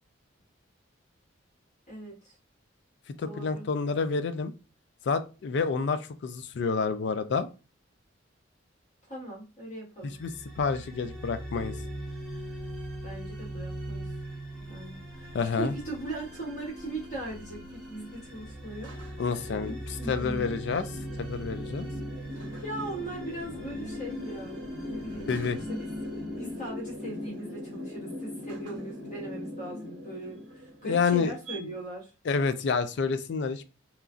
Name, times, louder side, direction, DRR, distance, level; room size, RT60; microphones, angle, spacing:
voice 1, 1.9-2.4 3.2-3.7 9.1-10.1 13.0-14.1 14.6-15.3 15.6-18.9 19.3-19.4 20.0-20.6 22.6-25.4 25.7-25.9 26.4-32.1, right 1 dB, 40° left, -6 dB, 1.6 m, -39 dB
voice 2, 3.2-4.5 5.1-7.5 10.0-10.3 10.6-11.8 15.3-15.7 19.2-19.7 20.1-20.9 21.2-21.9 25.3-25.6 30.8-31.7 32.3-33.6, left 5 dB, 60° left, 11 dB, 0.3 m, -28 dB
sound 1, 10.0-27.2, right 1 dB, 5° left, 0.9 m, -41 dB
sound 2, 15.2-31.6, left 1 dB, 70° right, 0.9 m, -41 dB
3.0 x 2.4 x 2.4 m, 0.32 s
head